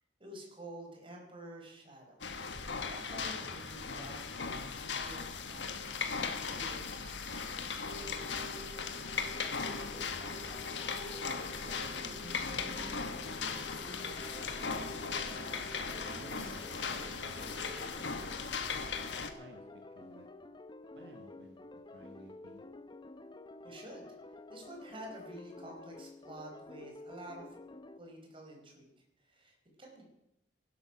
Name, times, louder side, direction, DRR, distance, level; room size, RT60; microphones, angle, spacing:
voice 1, 0.2-2.2 2.5-7.8 23.6-27.6 28.0-28.9 29.2-30.0, right 1 dB, 30° right, 1 dB, 4.5 m, -50 dB
sound 1, 2.2-19.3, left 5 dB, 80° left, 1.5 m, -38 dB
sound 2, 7.8-17.9, right 1 dB, 50° right, 3.8 m, -50 dB
sound 3, 9.3-28.0, left 2 dB, 25° left, 0.7 m, -51 dB
voice 2, 11.7-13.0 14.6-15.6 16.0-18.5 19.4-20.3 20.9-21.6 21.9-22.6, right 1 dB, 65° right, 4 dB, 1.5 m, -54 dB
16.0 x 12.0 x 6.1 m, 0.88 s
head